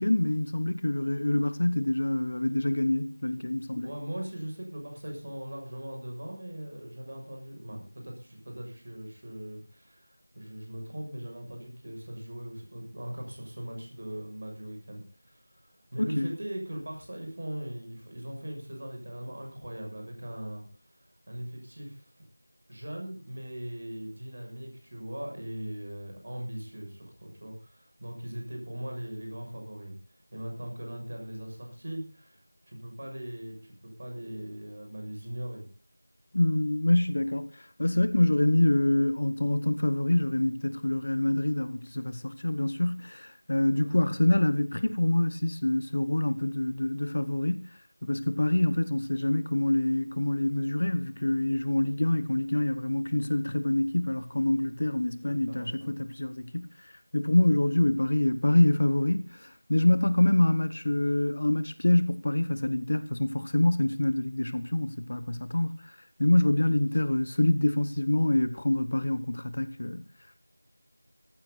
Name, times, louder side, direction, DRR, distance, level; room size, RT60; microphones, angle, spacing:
voice 1, 0.0-3.9 16.0-16.3 36.3-47.7 48.0-70.0, left 1 dB, 40° left, 1.1 m, -26 dB
voice 2, 3.8-22.2 22.7-30.0 30.3-35.7 43.7-44.1 55.0-55.9, right 1 dB, 35° right, 7.0 m, -40 dB
18.5 x 14.5 x 4.1 m
figure-of-eight pair, 175°, 0 cm